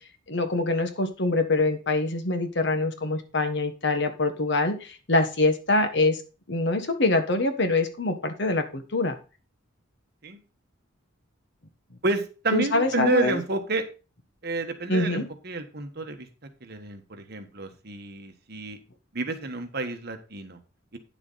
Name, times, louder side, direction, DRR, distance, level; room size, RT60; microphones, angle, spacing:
voice 1, 0.3-6.2 6.5-9.2 12.5-13.4 14.9-15.3, left 2 dB, 60° left, 7 dB, 1.4 m, -24 dB
voice 2, 12.0-13.8 14.4-16.3 16.6-18.8 19.1-20.6 20.9-21.0, right 2 dB, 50° right, 6 dB, 1.4 m, -30 dB
9.7 x 7.0 x 4.1 m, 0.32 s
head